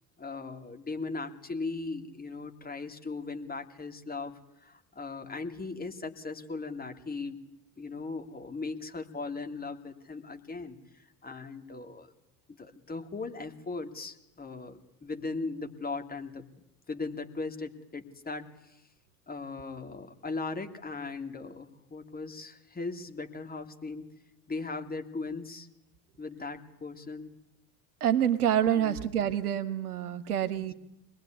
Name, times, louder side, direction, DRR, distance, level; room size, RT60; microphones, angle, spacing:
voice 1, 0.2-7.4 7.8-12.1 12.5-16.4 16.9-18.8 19.3-24.1 24.5-25.7 26.2-27.3 28.7-29.0, left 3 dB, 20° left, 5 dB, 3.0 m, -38 dB
voice 2, 28.0-30.7, right 10 dB, 70° right, 10 dB, 1.6 m, -27 dB
25.5 x 20.0 x 9.6 m, 0.85 s
figure-of-eight pair, 65°, 46 cm